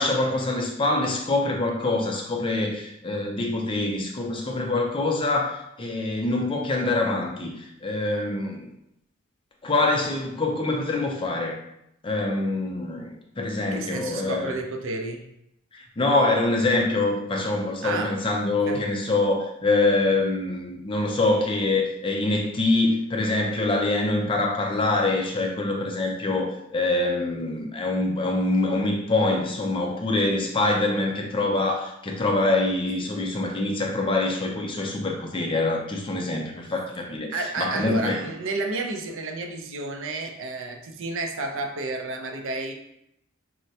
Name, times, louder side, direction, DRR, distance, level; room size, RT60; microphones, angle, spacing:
voice 1, 0.0-8.7 9.6-11.6 12.0-14.5 15.7-38.2, left 2 dB, 25° left, 0 dB, 0.4 m, -25 dB
voice 2, 13.7-15.3 17.8-18.2 18.7-18.9 37.3-42.7, right 2 dB, 60° right, 4 dB, 0.5 m, -31 dB
4.4 x 2.1 x 2.7 m, 0.80 s
head